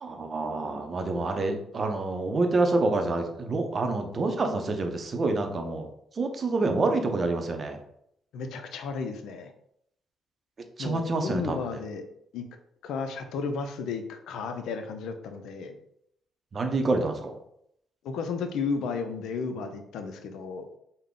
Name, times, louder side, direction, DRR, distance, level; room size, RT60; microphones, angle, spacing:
voice 1, 0.0-5.9 6.2-7.8 10.8-11.8 16.5-17.4, right 3 dB, 40° right, 5 dB, 0.6 m, -27 dB
voice 2, 8.3-9.5 10.8-12.0 12.3-12.4 12.8-15.8 18.0-20.7, left 5 dB, 80° left, 7 dB, 0.4 m, -33 dB
3.7 x 2.1 x 3.6 m, 0.73 s
cardioid pair, 90°, 0 cm